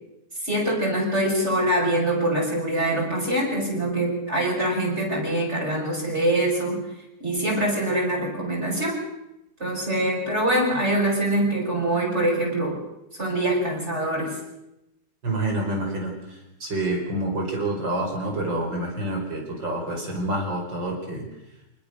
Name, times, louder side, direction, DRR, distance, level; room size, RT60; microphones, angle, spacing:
voice 1, 0.4-6.8 7.2-9.0 9.6-12.8 13.2-14.3, right 1 dB, 35° right, -2 dB, 6.7 m, -24 dB
voice 2, 15.2-21.3, right 1 dB, 70° right, 1 dB, 5.8 m, -28 dB
25.5 x 20.0 x 6.5 m, 0.91 s
omnidirectional pair, 2.1 m